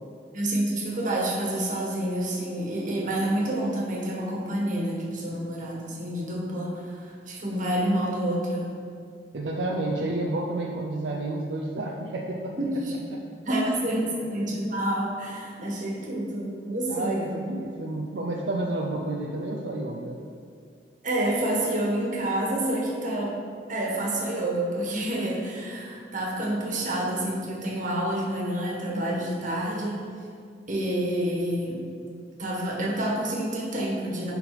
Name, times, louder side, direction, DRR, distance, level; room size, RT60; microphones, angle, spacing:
voice 1, 0.3-8.7 12.6-12.9 13.4-17.4 21.0-23.4 23.7-30.0 30.7-31.8 32.4-34.3, right 1 dB, 45° right, -3 dB, 1.6 m, -28 dB
voice 2, 9.3-12.6 13.1-13.2 16.9-20.2, right 2 dB, 80° right, -1 dB, 0.6 m, -30 dB
11.0 x 4.1 x 4.3 m, 2.2 s
head